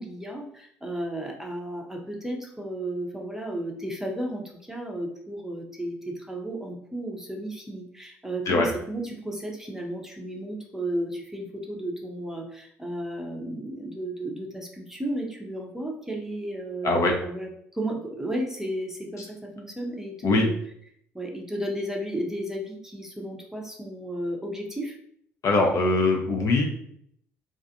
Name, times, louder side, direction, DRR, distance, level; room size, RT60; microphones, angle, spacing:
voice 1, 0.0-20.5 21.1-25.0, right 1 dB, 5° right, 0 dB, 0.6 m, -33 dB
voice 2, 16.8-17.1 20.2-20.5 25.4-26.6, left 2 dB, 45° left, 2 dB, 0.5 m, -21 dB
2.4 x 2.4 x 2.6 m, 0.67 s
figure-of-eight pair, 50°, 7 cm